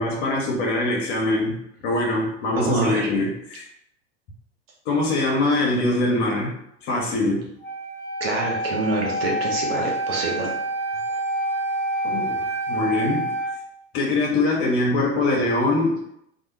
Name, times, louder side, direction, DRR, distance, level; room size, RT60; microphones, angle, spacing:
voice 1, 0.0-1.6 1.8-3.6 4.9-6.5 6.8-7.5 12.0-12.4 12.7-13.3 13.9-16.1, left 2 dB, 45° left, -1 dB, 0.9 m, -23 dB
voice 2, 2.5-3.1 8.2-10.5, right 3 dB, 60° right, -1 dB, 0.9 m, -26 dB
Wind instrument woodwind instrument, 7.6-13.6, right 1 dB, 10° left, 0.5 m, -27 dB
2.5 x 2.3 x 2.9 m, 0.75 s
figure-of-eight pair, 85°, 35 cm